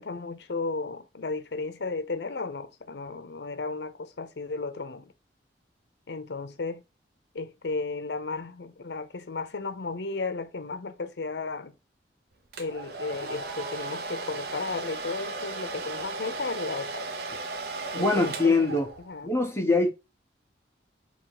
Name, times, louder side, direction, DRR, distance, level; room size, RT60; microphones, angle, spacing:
voice 1, 0.0-5.1 6.1-6.8 7.3-11.7 12.6-17.1 17.9-18.7 19.0-19.3, left 3 dB, 70° left, 0.7 m, -34 dB
Domestic sounds home sounds, 12.5-19.2, right 3 dB, 60° right, 0.8 m, -36 dB
voice 2, 18.0-18.9 19.2-19.9, left 3 dB, 15° left, 1.1 m, -23 dB
3.7 x 2.9 x 4.7 m
head